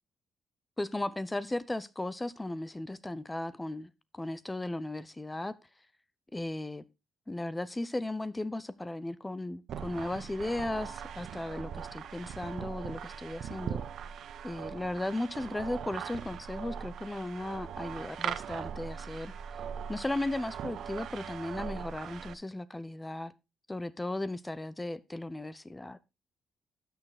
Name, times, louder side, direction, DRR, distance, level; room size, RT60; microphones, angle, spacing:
voice 1, 0.8-5.5 6.3-6.8 7.3-13.8 14.4-19.3 19.9-23.3 23.7-26.0, left 2 dB, 15° left, 0.7 m, -36 dB
sound 1, 9.7-22.3, right 8 dB, 65° right, 0.8 m, -40 dB
12.5 x 6.7 x 4.0 m
cardioid pair, 90°, 0 cm